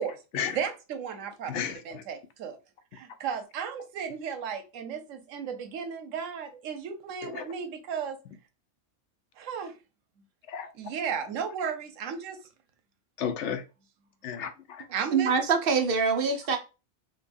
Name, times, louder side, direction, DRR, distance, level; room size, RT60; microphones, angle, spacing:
voice 1, 0.0-2.6 2.9-8.2 9.4-9.7 10.8-12.4 14.9-15.3, right 6 dB, 85° right, 1.1 m, -35 dB
voice 2, 1.5-2.0 7.2-7.4 10.5-10.7 13.2-13.6 14.2-14.9, left 7 dB, 70° left, 0.8 m, -33 dB
voice 3, 15.1-16.6, right 5 dB, 60° right, 0.7 m, -24 dB
5.3 x 2.3 x 2.5 m
omnidirectional pair, 1.3 m